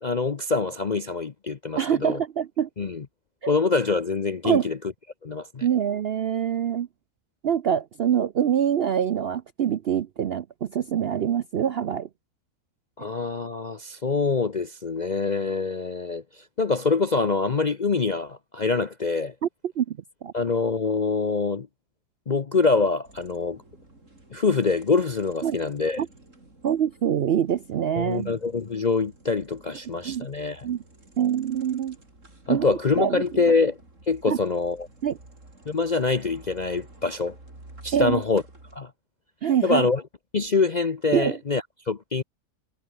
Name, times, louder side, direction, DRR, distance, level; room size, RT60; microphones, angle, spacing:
voice 1, 0.0-2.2 2.8-3.1 3.5-4.8 5.2-5.6 13.0-19.3 20.3-21.7 22.3-23.6 24.3-26.0 28.0-30.7 32.5-33.8 34.1-34.9 35.7-37.4 37.8-38.4 38.7-38.9 39.6-40.0 40.3-42.2, left 4 dB, 40° left, 0.7 m, -25 dB
voice 2, 1.8-2.7 3.4-3.5 4.4-4.7 5.6-6.9 7.4-12.1 19.8-20.3 25.4-25.6 26.0-26.1 26.6-28.3 30.0-30.3 30.6-30.8 31.2-32.0 32.5-33.2 34.3-34.4 35.0-35.2 37.9-38.2 39.4-39.9 41.1-41.4, right 9 dB, 65° right, 0.6 m, -25 dB
sound 1, 23.0-38.8, right 2 dB, 50° right, 6.0 m, -51 dB
omnidirectional pair, 1.7 m